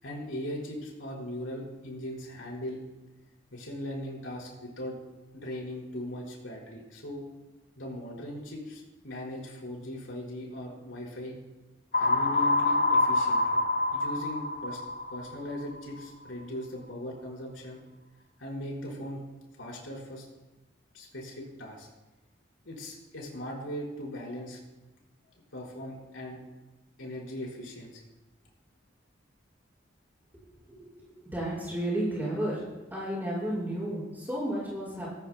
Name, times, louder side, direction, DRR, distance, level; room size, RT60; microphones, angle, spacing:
voice 1, 0.0-2.9 3.5-5.0 5.3-7.2 7.8-11.4 12.0-13.5 13.9-14.8 15.1-17.8 18.4-19.2 19.5-20.2 20.9-21.9 22.6-24.6 25.5-26.4 27.0-28.0, left 1 dB, 90° left, -3 dB, 4.9 m, -39 dB
sound 1, 11.9-15.8, left 2 dB, 50° left, 1.3 m, -26 dB
voice 2, 31.2-32.6 32.9-35.1, right 1 dB, 10° right, -7 dB, 5.6 m, -32 dB
20.5 x 14.0 x 2.3 m, 1.1 s
head